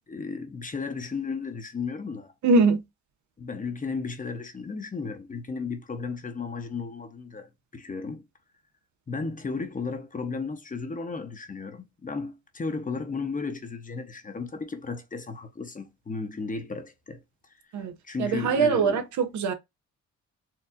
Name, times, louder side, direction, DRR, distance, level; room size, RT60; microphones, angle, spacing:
voice 1, 0.0-2.3 3.4-8.3 9.1-17.2 18.0-19.0, left 4 dB, 25° left, 0.9 m, -34 dB
voice 2, 2.4-2.8 17.7-17.9 18.2-19.5, right 4 dB, 70° right, 0.9 m, -22 dB
4.5 x 2.7 x 2.5 m
cardioid pair, 90°, 30 cm